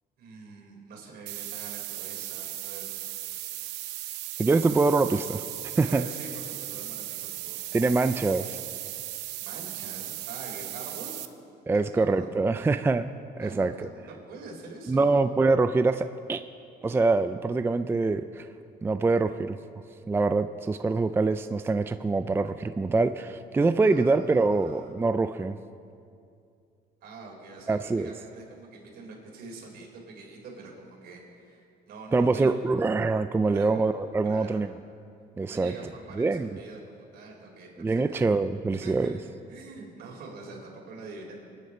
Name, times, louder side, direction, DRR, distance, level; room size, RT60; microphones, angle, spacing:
voice 1, 0.2-2.9 5.8-7.6 9.4-11.2 11.7-12.3 13.4-15.2 23.8-24.9 27.0-32.5 33.4-33.7 34.2-34.6 35.4-38.2 38.8-39.2 39.5-41.4, right 3 dB, 70° right, 0 dB, 4.1 m, -45 dB
sound 1, 1.3-11.3, right 14 dB, 90° right, 0.8 m, -37 dB
voice 2, 4.4-5.4 5.8-6.0 7.7-8.6 11.7-13.7 14.9-16.4 16.8-18.5 18.8-19.6 20.1-25.6 27.7-28.1 32.1-34.7 35.4-35.7 36.2-36.5 37.8-39.2, right 3 dB, 15° right, 10 dB, 0.4 m, -24 dB
24.5 x 10.0 x 4.3 m, 2.5 s
cardioid pair, 110°, 17 cm